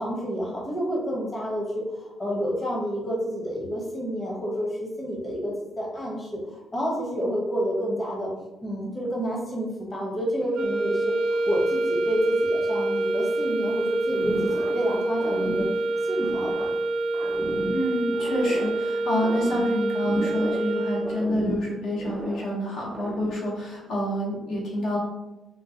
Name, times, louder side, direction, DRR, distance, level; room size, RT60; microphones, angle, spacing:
voice 1, 0.0-8.3 8.6-15.7 16.0-16.7, equal, 30° left, -3 dB, 1.0 m, -29 dB
sound 1, 10.5-21.4, right 2 dB, 80° right, 0.4 m, -26 dB
sound 2, 14.1-14.9 15.1-16.8 17.1-18.8 19.1-20.7 21.0-22.6 22.9-23.5, right 1 dB, 25° right, 0.5 m, -34 dB
voice 2, 17.7-25.0, left 1 dB, 70° left, -4 dB, 1.0 m, -28 dB
3.7 x 2.2 x 2.8 m, 1.0 s
cardioid pair, 90°, 0 cm